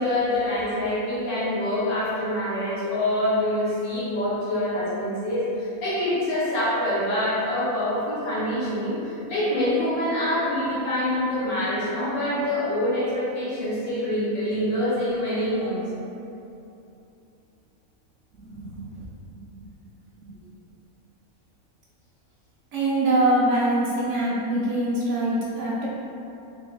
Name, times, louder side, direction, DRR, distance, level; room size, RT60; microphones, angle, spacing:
voice 1, 0.0-15.8, left 1 dB, 75° left, -10 dB, 1.8 m, -25 dB
voice 2, 18.3-18.8 20.2-20.3 22.7-25.9, right 1 dB, 65° right, -6 dB, 0.9 m, -24 dB
4.6 x 3.4 x 2.2 m, 2.8 s
omnidirectional pair, 1.6 m